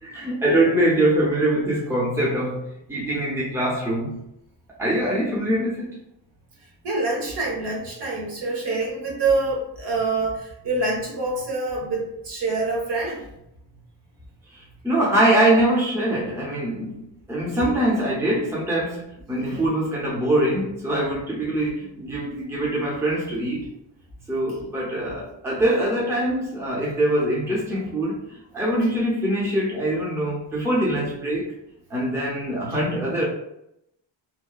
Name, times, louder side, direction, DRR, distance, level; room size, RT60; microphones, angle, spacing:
voice 1, 0.0-4.1 4.8-5.9 14.5-17.0 17.3-23.7 24.3-31.5 31.9-33.2, right 1 dB, 5° right, -5 dB, 0.6 m, -23 dB
voice 2, 6.8-13.3 17.5-17.7 19.3-19.7, right 3 dB, 65° right, -2 dB, 0.9 m, -26 dB
2.9 x 2.1 x 2.2 m, 0.81 s
wide cardioid pair, 140°, 45 cm